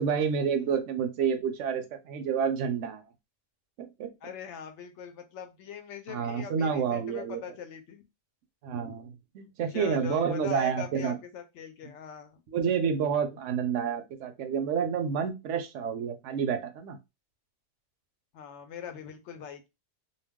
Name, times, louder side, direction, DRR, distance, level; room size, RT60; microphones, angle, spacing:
voice 1, 0.0-3.0 3.8-4.1 6.1-7.4 8.6-11.2 12.5-17.0, right 7 dB, 80° right, 9 dB, 0.9 m, -29 dB
voice 2, 4.2-8.0 9.7-12.4 18.3-19.7, left 8 dB, 75° left, 7 dB, 0.9 m, -41 dB
2.3 x 2.2 x 3.5 m, 0.24 s
omnidirectional pair, 1.2 m